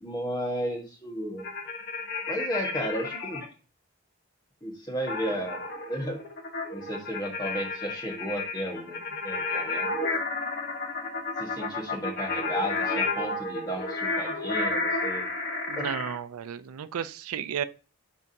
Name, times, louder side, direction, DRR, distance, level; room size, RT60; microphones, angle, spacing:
voice 1, 0.0-1.5 2.3-3.4 4.6-5.6 5.9-6.2 6.7-9.9 11.4-15.2 15.8-15.9, equal, 20° left, 1.5 m, -33 dB
sound 1, 1.4-3.5 5.1-16.2, left 3 dB, 45° left, 1.4 m, -31 dB
voice 2, 15.7-17.6, right 8 dB, 85° right, 0.4 m, -33 dB
9.6 x 3.6 x 2.8 m
head